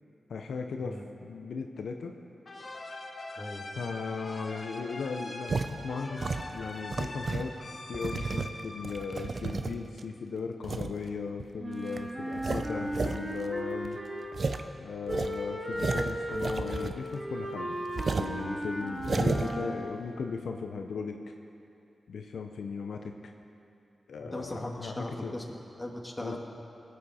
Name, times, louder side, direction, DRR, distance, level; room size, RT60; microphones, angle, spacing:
voice 1, 0.3-2.1 3.7-6.2 6.5-7.5 7.9-14.0 14.8-21.2 22.1-23.3 24.1-25.4 26.2-26.4, left 5 dB, 85° left, 4 dB, 0.6 m, -37 dB
sound 1, 2.5-9.9, left 2 dB, 50° left, 1.5 m, -43 dB
voice 2, 3.4-3.7 24.2-26.4, left 1 dB, 20° left, 0 dB, 1.9 m, -38 dB
sound 2, 5.5-5.7 6.2-7.5 7.9-10.0 10.6-10.9 11.4-11.5 11.9-12.0 12.3-13.2 13.4-13.5 13.8-13.9 14.3-14.6 15.1-17.2 17.4-17.5 18.0-18.3 18.9-19.5, right 4 dB, 60° right, 0.6 m, -32 dB
Wind instrument woodwind instrument, 11.6-14.5 15.0-19.9, equal, 30° right, 1.9 m, -36 dB
19.0 x 8.5 x 4.2 m, 2.7 s
cardioid pair, 55°, 0 cm